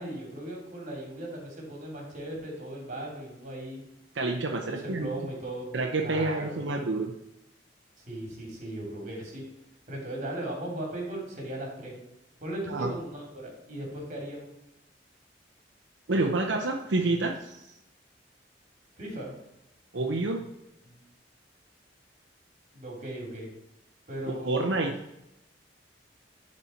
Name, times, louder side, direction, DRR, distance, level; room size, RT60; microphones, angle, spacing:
voice 1, 0.0-3.8 4.5-5.7 6.0-6.7 8.1-9.4 9.9-11.9 12.4-14.5 19.0-19.3 20.8-21.0 22.7-23.5 24.1-24.8, right 1 dB, 45° right, 0 dB, 3.0 m, -37 dB
voice 2, 4.1-5.1 5.7-7.1 12.7-12.9 16.1-17.7 19.9-20.4 24.3-24.9, right 2 dB, 80° right, 2 dB, 0.8 m, -28 dB
11.0 x 4.3 x 4.4 m, 0.89 s
head